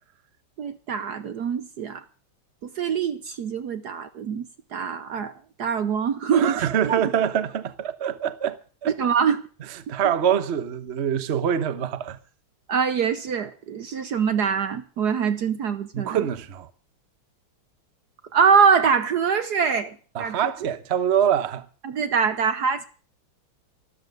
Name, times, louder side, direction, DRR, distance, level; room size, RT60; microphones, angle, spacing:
voice 1, 0.6-2.0 2.8-5.3 5.6-7.0 9.0-9.4 12.7-16.2 18.3-20.7 21.8-22.9, right 6 dB, 60° right, 1.2 m, -24 dB
voice 2, 6.3-8.9 9.9-12.2 15.9-16.7 20.1-21.7, right 9 dB, 45° right, 0.9 m, -25 dB
13.5 x 13.0 x 6.6 m
omnidirectional pair, 2.3 m